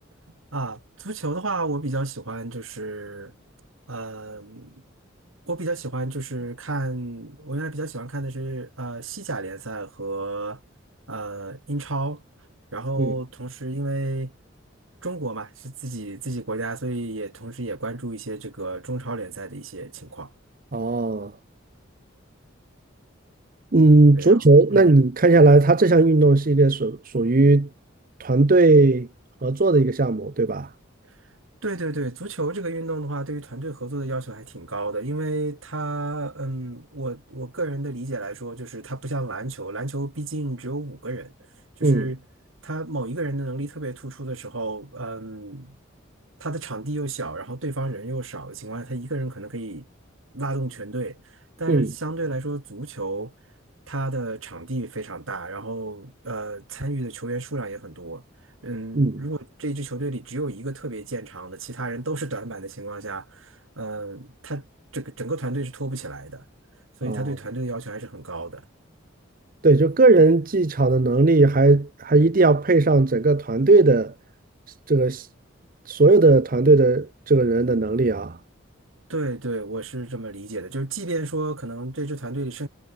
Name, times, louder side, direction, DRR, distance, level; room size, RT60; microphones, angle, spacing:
voice 1, 0.5-3.3 3.9-4.8 5.5-10.6 11.1-12.2 12.7-14.3 15.0-20.3 24.1-24.4 24.7-24.9 31.6-41.3 41.8-42.2 42.6-45.8 46.4-49.8 50.3-51.2 51.6-53.3 53.9-58.2 58.6-64.7 64.9-66.4 67.0-68.6 79.1-82.7, right 2 dB, 85° right, 2.8 m, -31 dB
voice 2, 20.7-21.3 23.7-27.7 28.2-29.1 29.4-30.7 41.8-42.1 51.7-51.9 58.9-59.3 67.1-67.3 69.6-74.1 74.9-75.3 75.9-78.4, right 3 dB, 45° right, 0.8 m, -17 dB
head